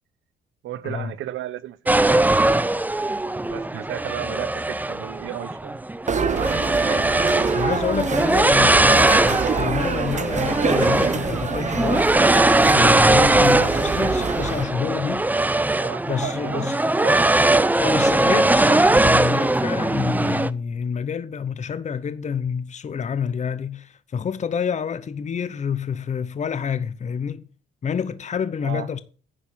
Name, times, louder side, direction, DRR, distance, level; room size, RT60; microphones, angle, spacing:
voice 1, 0.6-2.5 3.5-5.8 15.8-16.7 17.0-17.2 28.6-28.9, right 12 dB, 80° right, 0.9 m, -34 dB
sound 1, 1.9-20.5, right 2 dB, 10° right, 0.5 m, -20 dB
sound 2, 6.1-14.6, right 6 dB, 35° right, 1.1 m, -26 dB
voice 2, 7.5-12.1 12.7-15.3 16.1-16.8 17.8-27.5 27.8-29.0, left 7 dB, 35° left, 0.8 m, -28 dB
9.9 x 6.3 x 7.3 m
cardioid pair, 90°, 20 cm